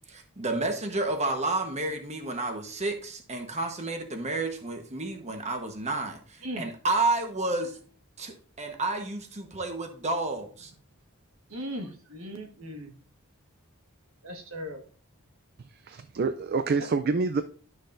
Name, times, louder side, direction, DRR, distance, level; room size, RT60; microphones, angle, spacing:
voice 1, 0.1-7.8 8.2-10.7, right 2 dB, 30° right, 5 dB, 1.1 m, -30 dB
voice 2, 11.5-12.9 14.2-14.8 16.8-16.9, equal, 75° right, 4 dB, 1.6 m, -38 dB
voice 3, 15.6-17.4, right 4 dB, 45° right, 10 dB, 0.4 m, -27 dB
12.0 x 6.2 x 2.6 m, 0.42 s
head